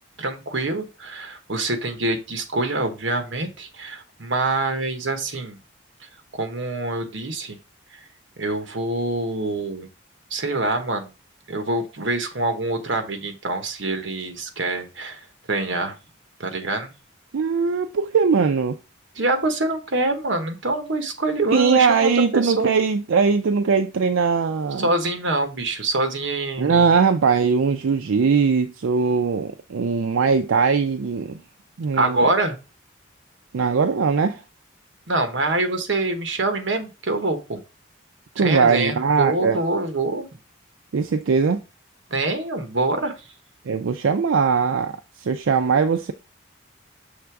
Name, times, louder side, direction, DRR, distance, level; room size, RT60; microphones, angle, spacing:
voice 1, 0.2-5.6 6.3-7.6 8.4-9.9 10.3-11.1 11.5-15.2 15.5-15.9 16.4-16.9 19.1-22.7 24.8-26.9 31.9-32.6 35.1-37.6 38.4-40.3 42.1-43.2, right 2 dB, 70° right, 1.1 m, -25 dB
voice 2, 17.3-18.8 21.5-24.9 26.6-31.4 31.8-32.2 33.5-34.4 38.4-39.6 40.9-41.6 43.7-46.1, right 5 dB, 90° right, 0.4 m, -20 dB
6.5 x 3.4 x 4.6 m
head